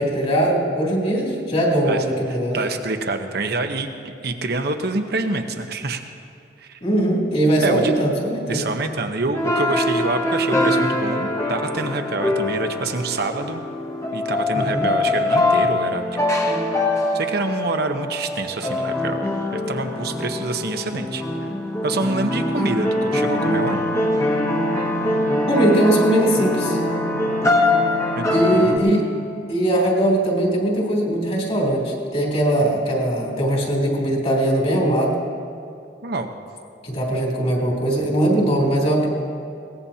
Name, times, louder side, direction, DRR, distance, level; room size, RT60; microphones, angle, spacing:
voice 1, 0.0-2.6 6.8-8.7 14.5-15.0 25.5-26.8 28.3-35.2 36.8-39.1, right 1 dB, 40° left, -2 dB, 3.2 m, -20 dB
voice 2, 1.9-6.0 6.6-6.8 7.6-8.0 8.5-13.6 14.1-16.2 17.1-21.5 21.8-23.8 28.2-28.7 36.0-36.3, right 2 dB, 60° right, 6 dB, 1.0 m, -26 dB
sound 1, 9.3-28.8, left 1 dB, 15° left, 1.3 m, -23 dB
22.0 x 18.0 x 2.9 m, 2.5 s
head